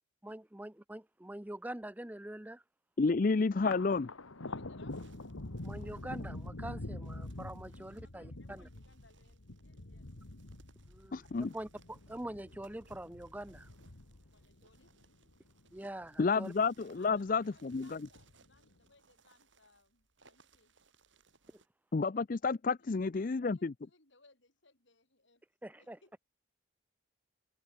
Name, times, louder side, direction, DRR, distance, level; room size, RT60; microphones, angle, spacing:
voice 1, 0.2-2.6 5.6-8.7 10.9-11.3 11.5-13.7 15.7-16.5 21.5-21.6 25.6-26.0, right 1 dB, 10° right, 0.5 m, -44 dB
voice 2, 3.0-4.1 11.1-11.5 16.2-18.0 21.9-23.7, left 4 dB, 40° left, 0.4 m, -30 dB
Thunder, 3.5-16.2 16.6-17.4 17.7-18.6, left 2 dB, 85° left, 1.9 m, -46 dB
voice 3, 4.3-5.0 5.6-5.7 7.6-10.1 14.1-14.9 16.9-20.7 22.8-25.4 25.8-26.2, left 2 dB, 65° left, 4.8 m, -66 dB
sound 1, 4.9-21.7, right 4 dB, 65° right, 6.5 m, -68 dB
head